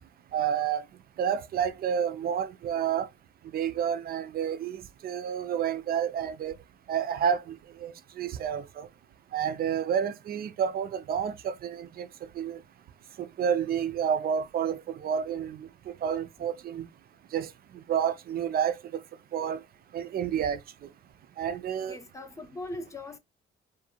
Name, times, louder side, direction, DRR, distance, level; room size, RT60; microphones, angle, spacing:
voice 1, 0.3-0.8 1.2-3.1 3.5-6.5 6.9-8.9 9.3-12.1 12.4-12.6 13.2-15.7 16.0-16.9 17.3-17.5 17.9-18.7 19.3-19.6 19.9-20.6 21.4-22.0, right 8 dB, 50° right, 0.4 m, -29 dB
voice 2, 21.9-23.2, left 2 dB, 15° left, 0.5 m, -40 dB
2.5 x 2.2 x 2.8 m
cardioid pair, 90°, 20 cm